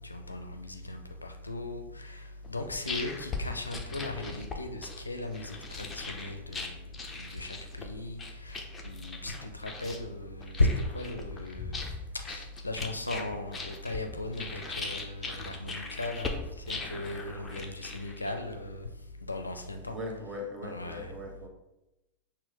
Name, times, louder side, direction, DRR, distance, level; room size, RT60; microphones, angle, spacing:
voice 1, 0.0-6.8 7.2-10.7 10.9-11.8 12.1-16.3 16.7-18.9 19.3-20.0 20.6-21.1, left 2 dB, 80° left, 6 dB, 0.5 m, -36 dB
sound 1, 2.4-18.5, left 3 dB, 15° left, 0.6 m, -40 dB
voice 2, 19.9-21.5, left 1 dB, 20° right, 0 dB, 1.0 m, -39 dB
6.0 x 2.1 x 3.7 m, 0.94 s
figure-of-eight pair, 90°, 0 cm